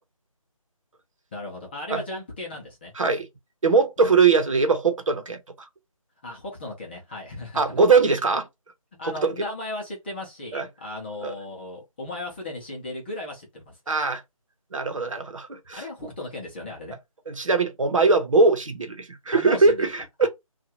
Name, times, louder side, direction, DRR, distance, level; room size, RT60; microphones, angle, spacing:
voice 1, 1.3-2.9 4.0-4.1 6.2-7.8 9.0-13.8 15.8-17.0 19.3-19.9 20.2-20.3, left 1 dB, 20° left, 0.7 m, -36 dB
voice 2, 2.9-3.3 3.6-5.4 7.5-8.5 9.0-9.3 10.5-10.7 11.2-11.3 13.9-14.2 14.7-15.8 17.3-20.3, right 4 dB, 65° right, 0.9 m, -21 dB
2.7 x 2.4 x 2.8 m
figure-of-eight pair, 160°, 18 cm